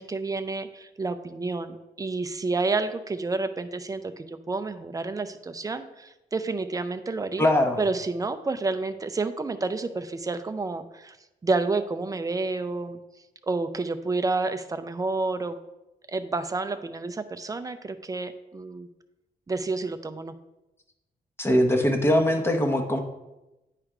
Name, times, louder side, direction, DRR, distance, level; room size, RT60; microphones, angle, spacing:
voice 1, 0.0-7.5 7.8-11.2 11.4-13.0 13.4-15.6 16.1-18.9 19.5-20.3, right 3 dB, 20° right, 10 dB, 0.4 m, -29 dB
voice 2, 7.4-7.8 21.4-23.0, left 1 dB, 15° left, 4 dB, 0.8 m, -21 dB
9.8 x 3.3 x 4.8 m, 0.97 s
wide cardioid pair, 145°, 17 cm